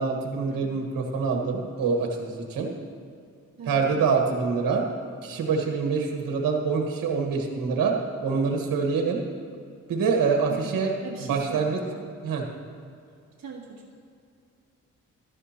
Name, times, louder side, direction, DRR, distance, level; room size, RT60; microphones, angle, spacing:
voice 1, 0.0-2.7 3.7-4.8 5.2-7.9 8.2-9.2 9.9-10.9 11.2-11.8 12.2-12.4, right 5 dB, 80° right, 2 dB, 1.4 m, -25 dB
voice 2, 3.6-4.0 10.5-12.1 13.4-14.0, right 4 dB, 55° right, -4 dB, 1.4 m, -41 dB
14.5 x 12.0 x 2.9 m, 2.4 s
cardioid pair, 100°, 33 cm